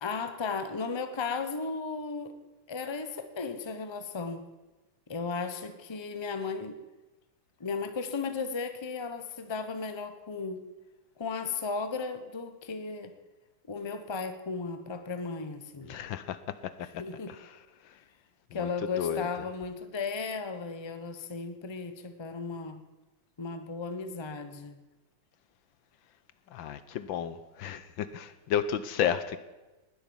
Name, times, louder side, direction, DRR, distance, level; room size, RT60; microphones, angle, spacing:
voice 1, 0.0-2.3 2.7-4.5 5.1-6.8 7.6-10.6 11.2-13.1 13.7-16.0 16.8-17.4 18.5-22.8 23.4-24.8, left 4 dB, 20° left, 9 dB, 0.7 m, -35 dB
voice 2, 15.9-16.9 17.3-17.5 18.6-18.7 19.0-19.3 26.5-29.4, left 9 dB, 70° left, 13 dB, 1.4 m, -32 dB
20.0 x 8.1 x 7.2 m, 1.1 s
omnidirectional pair, 2.3 m